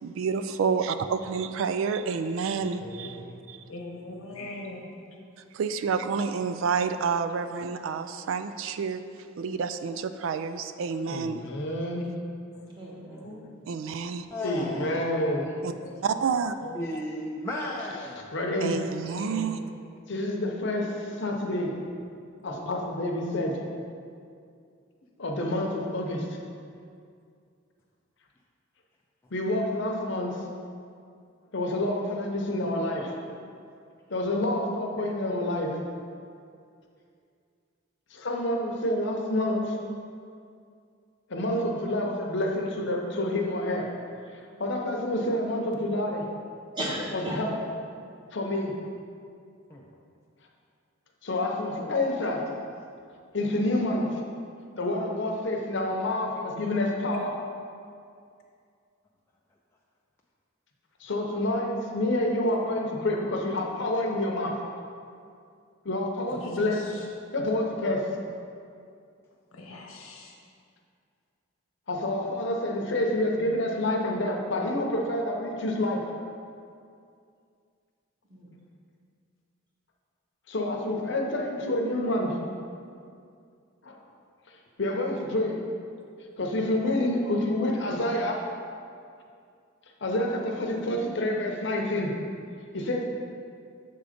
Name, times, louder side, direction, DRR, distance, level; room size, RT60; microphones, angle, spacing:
voice 1, 0.0-3.2 3.5-3.6 5.5-9.0 9.4-11.5 13.7-14.3 15.6-15.7 16.0-16.5 18.6-19.6, right 5 dB, 70° right, 11 dB, 0.3 m, -29 dB
voice 2, 2.6-3.3 11.1-12.0 14.4-15.5 18.3-18.8 20.1-21.7 22.4-23.6 25.2-26.3 29.3-30.4 31.5-33.1 34.1-35.8 38.1-39.8 41.3-43.9 44.3-46.3 47.3-47.6 48.3-48.7 51.2-52.4 53.3-54.2 54.8-57.3 61.0-64.6 65.8-67.0 67.3-68.0 71.9-76.0 80.5-82.4 83.8-84.0 84.8-85.6 86.4-88.4 90.0-92.1 92.7-93.0, left 1 dB, 60° left, 1 dB, 0.8 m, -28 dB
voice 3, 3.7-4.9 12.5-12.7 13.2-13.4 15.8-15.9 16.6-16.8 66.3-66.8 69.5-70.3, left 2 dB, 90° left, 0 dB, 1.0 m, -41 dB
voice 4, 12.7-13.6 19.0-20.2 46.7-47.4 78.2-78.5, right 1 dB, 20° right, -5 dB, 1.2 m, -37 dB
voice 5, 14.3-15.0 16.7-18.3 32.9-33.1 49.7-49.9 66.3-66.4, left 1 dB, 10° left, -3 dB, 0.4 m, -34 dB
6.9 x 3.8 x 5.0 m, 2.3 s
head